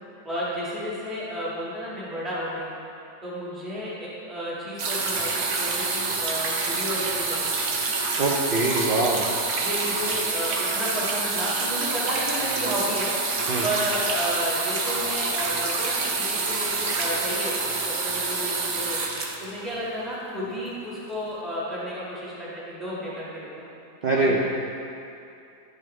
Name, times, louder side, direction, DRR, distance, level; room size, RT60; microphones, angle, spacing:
voice 1, 0.2-2.7 3.2-7.5 9.6-13.1 13.6-17.5 17.8-19.0 19.4-23.7 24.2-24.4, equal, ahead, -9 dB, 1.5 m, -32 dB
sound 1, 4.8-20.2 21.1-21.2, right 3 dB, 55° right, 1.0 m, -27 dB
voice 2, 8.2-9.3 13.5-13.7 24.0-24.4, right 2 dB, 85° right, -3 dB, 0.4 m, -23 dB
11.0 x 5.3 x 3.2 m, 2.6 s
omnidirectional pair, 1.8 m